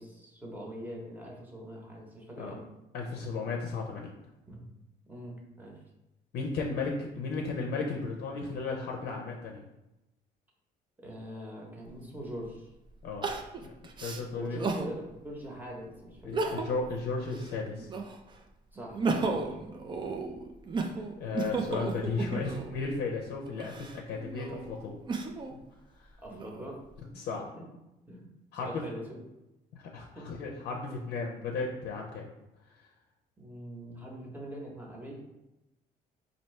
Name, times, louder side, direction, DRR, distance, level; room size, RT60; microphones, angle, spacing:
voice 1, 0.0-2.7 4.5-4.6 5.1-5.8 11.0-12.7 14.3-16.5 18.7-19.6 26.2-26.8 27.5-27.6 28.0-28.3 28.5-29.2 30.1-30.3 33.4-35.2, equal, 10° right, -2 dB, 1.0 m, -43 dB
voice 2, 2.9-4.1 6.3-9.6 13.0-13.3 13.6-13.7 14.0-14.6 16.3-17.9 21.2-25.0 25.5-25.6 26.0-26.1 27.1-27.4 28.5-28.8 29.7-32.3, left 4 dB, 65° left, 0 dB, 0.6 m, -34 dB
Crying sobbing, 11.9-12.0 13.2-14.9 15.4-15.5 16.2-16.9 17.3-18.3 18.8-22.8 23.5-25.5 26.1-26.9, right 4 dB, 30° right, 0.4 m, -34 dB
4.2 x 2.7 x 3.2 m, 0.96 s
cardioid pair, 110°, 17 cm